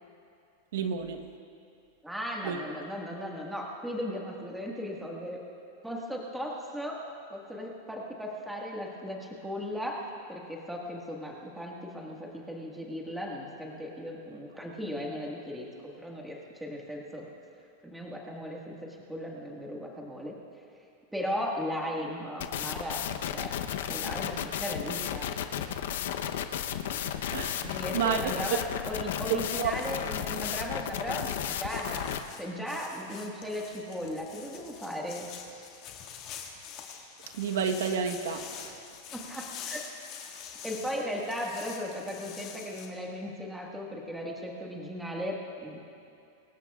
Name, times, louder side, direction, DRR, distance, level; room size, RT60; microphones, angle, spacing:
voice 1, 0.7-1.2 2.4-2.6 27.3-28.6 29.6-29.7 37.3-38.7, right 7 dB, 80° right, 6 dB, 1.2 m, -30 dB
voice 2, 2.0-5.4 5.8-7.0 7.3-17.3 17.8-20.3 20.7-20.8 21.1-23.5 23.9-25.3 27.6-35.3 39.1-39.8 40.4-45.8, equal, 5° right, -2 dB, 1.7 m, -37 dB
sound 1, 22.4-32.2, left 10 dB, 75° left, 0.8 m, -33 dB
sound 2, 29.5-42.9, left 8 dB, 40° left, 1.9 m, -46 dB
24.5 x 19.0 x 2.4 m, 2.5 s
supercardioid pair, 160°, 0 cm